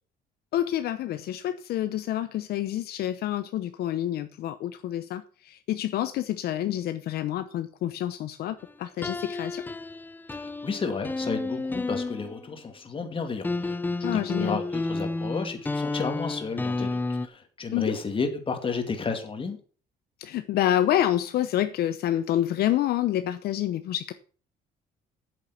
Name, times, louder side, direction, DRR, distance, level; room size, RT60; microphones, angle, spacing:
voice 1, 0.5-9.6 14.0-14.6 17.7-18.0 20.2-24.1, left 12 dB, 70° left, 0.8 m, -28 dB
sound 1, 9.0-12.5 13.4-17.3, left 3 dB, 10° left, 0.5 m, -31 dB
voice 2, 10.3-19.6, left 4 dB, 30° left, 2.4 m, -32 dB
8.4 x 7.5 x 7.0 m
cardioid pair, 110°, 17 cm